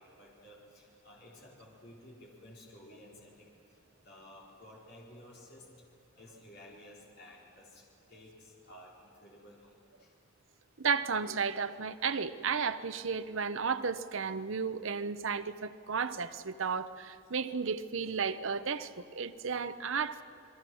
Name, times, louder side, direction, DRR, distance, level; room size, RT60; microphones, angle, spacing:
voice 1, 0.0-10.5, left 1 dB, 50° left, -3 dB, 4.4 m, -55 dB
voice 2, 10.8-20.2, right 5 dB, 70° right, 12 dB, 0.8 m, -33 dB
28.0 x 21.5 x 6.3 m, 2.6 s
head